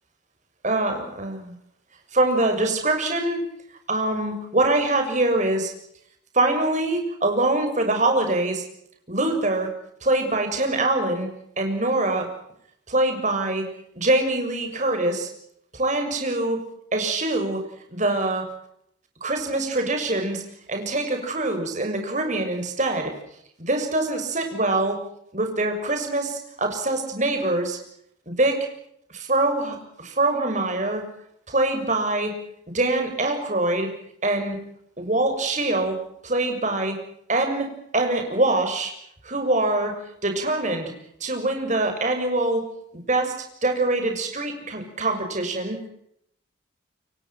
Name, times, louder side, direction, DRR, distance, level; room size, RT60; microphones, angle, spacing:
voice 1, 0.6-1.5 2.1-3.4 3.9-5.7 6.3-8.6 9.1-9.7 10.0-11.3 11.6-12.3 12.9-13.6 13.9-15.3 15.8-16.6 16.9-17.6 17.9-18.5 19.2-20.4 20.7-23.1 23.6-25.0 25.3-27.8 28.3-28.6 29.1-31.0 31.5-32.3 32.7-33.9 34.2-34.6 35.0-35.9 36.2-36.9 37.3-37.7 37.9-38.9 39.2-39.9 40.2-40.9 41.2-42.6 42.9-43.3 43.6-45.8, right 2 dB, 40° right, 4 dB, 6.7 m, -24 dB
29.0 x 24.5 x 5.9 m, 0.72 s
head